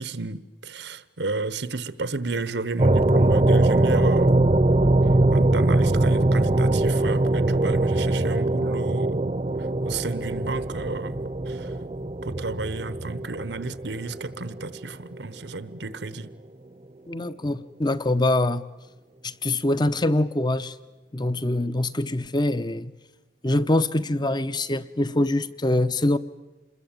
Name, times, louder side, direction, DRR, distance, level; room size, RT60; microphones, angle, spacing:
voice 1, 0.0-4.4 5.3-9.3 9.8-11.2 11.5-11.7 12.2-16.3, right 3 dB, 80° right, 1.1 m, -32 dB
sound 1, 2.8-14.6, right 2 dB, 35° right, 0.8 m, -22 dB
voice 2, 17.1-18.7 19.2-20.7 21.1-22.9 23.4-26.2, left 1 dB, 25° left, 0.8 m, -24 dB
27.5 x 21.0 x 8.9 m
head